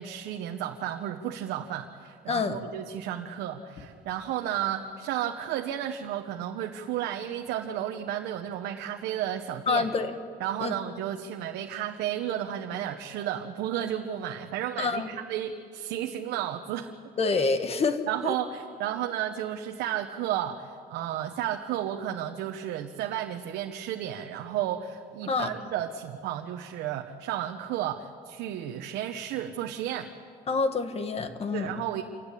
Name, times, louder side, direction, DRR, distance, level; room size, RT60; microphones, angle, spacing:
voice 1, 0.0-9.9 10.4-16.9 18.1-30.1 31.5-32.0, right 11 dB, 90° right, 4 dB, 1.1 m, -33 dB
voice 2, 2.3-2.6 9.7-10.2 10.6-10.7 14.8-15.1 17.2-18.3 25.3-25.5 30.5-31.7, left 4 dB, 35° left, 9 dB, 1.6 m, -27 dB
26.5 x 15.0 x 10.0 m, 2.3 s
cardioid pair, 110°, 17 cm